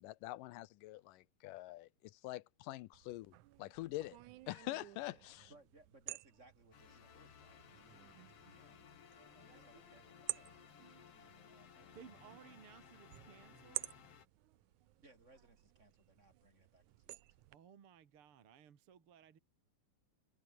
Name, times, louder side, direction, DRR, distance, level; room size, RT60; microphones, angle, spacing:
voice 1, 0.0-5.5, left 17 dB, 80° left, 2.1 m, -46 dB
sound 1, 2.9-17.6, right 17 dB, 75° right, 1.8 m, -52 dB
voice 2, 5.3-8.9 9.4-12.4 15.0-17.4, right 2 dB, 20° right, 6.4 m, -67 dB
sound 2, 6.7-14.3, left 8 dB, 45° left, 2.6 m, -60 dB
voice 3, 11.9-13.9 17.5-19.4, right 8 dB, 45° right, 2.3 m, -59 dB
omnidirectional pair, 4.2 m